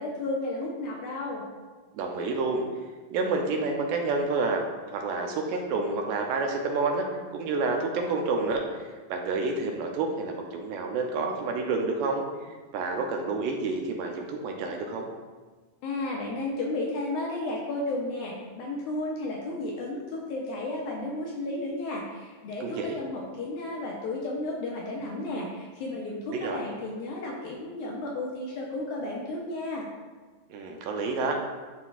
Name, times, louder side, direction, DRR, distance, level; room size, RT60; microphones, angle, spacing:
voice 1, 0.0-1.4 15.8-29.9, left 2 dB, 75° left, -2 dB, 1.9 m, -33 dB
voice 2, 1.9-2.6 3.1-4.6 4.9-7.1 7.3-15.1 22.6-23.0 26.3-26.6 30.5-31.4, right 3 dB, 80° right, 1 dB, 2.2 m, -29 dB
11.0 x 4.1 x 2.4 m, 1.3 s
omnidirectional pair, 4.1 m